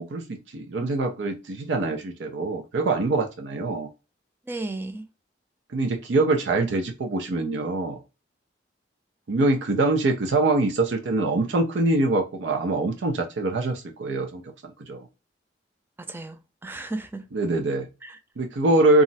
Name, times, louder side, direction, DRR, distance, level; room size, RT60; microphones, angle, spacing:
voice 1, 0.0-3.9 5.7-8.0 9.3-15.1 17.3-17.9 18.4-19.0, right 2 dB, 85° right, 0.5 m, -24 dB
voice 2, 4.5-5.1 16.0-17.3 18.0-18.2, right 2 dB, 10° right, 0.3 m, -34 dB
2.4 x 2.1 x 3.9 m
head